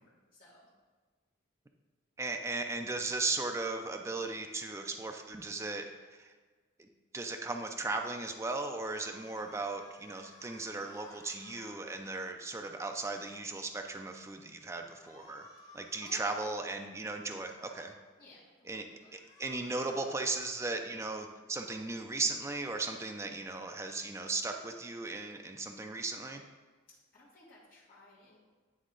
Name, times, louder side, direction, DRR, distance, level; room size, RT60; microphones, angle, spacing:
voice 1, 0.0-0.7 16.0-16.6 18.2-19.1 26.9-28.4, left 2 dB, 45° left, -9 dB, 1.2 m, -55 dB
voice 2, 2.2-5.9 6.1-6.3 7.1-15.5 15.7-17.9 18.6-18.9 19.1-26.4, right 3 dB, 15° right, 4 dB, 0.3 m, -37 dB
sound 1, 8.7-11.8 14.9-16.1 17.3-17.8 19.0-20.2, left 2 dB, 20° left, 1.0 m, -58 dB
9.2 x 3.5 x 3.8 m, 1.4 s
head